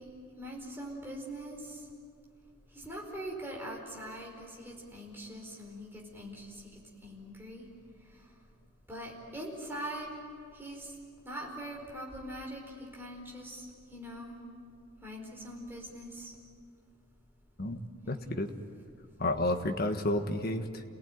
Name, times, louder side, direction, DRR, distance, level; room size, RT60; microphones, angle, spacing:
voice 1, 0.0-1.8 2.7-7.6 8.9-10.1 10.5-10.9 11.2-13.6 13.9-14.4 15.0-16.3 18.0-18.3, right 1 dB, 10° right, -2 dB, 4.9 m, -42 dB
voice 2, 18.1-18.5 19.2-20.8, left 1 dB, 45° left, 5 dB, 1.6 m, -31 dB
28.5 x 19.0 x 9.5 m, 2.2 s
head